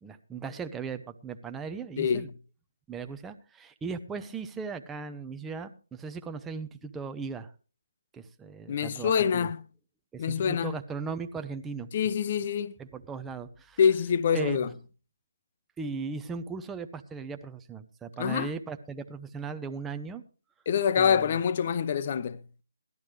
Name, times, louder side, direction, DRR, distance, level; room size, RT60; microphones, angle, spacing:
voice 1, 0.0-2.3 2.9-7.5 8.1-9.5 10.1-11.9 12.8-13.8 14.3-14.7 15.8-20.2 21.0-21.4, right 5 dB, 10° right, 0.7 m, -37 dB
voice 2, 2.0-2.3 8.7-9.7 10.2-10.8 11.9-12.7 13.8-14.7 18.2-18.5 20.7-22.4, left 7 dB, 40° left, 0.8 m, -26 dB
17.0 x 12.0 x 3.3 m
figure-of-eight pair, 155°, 0 cm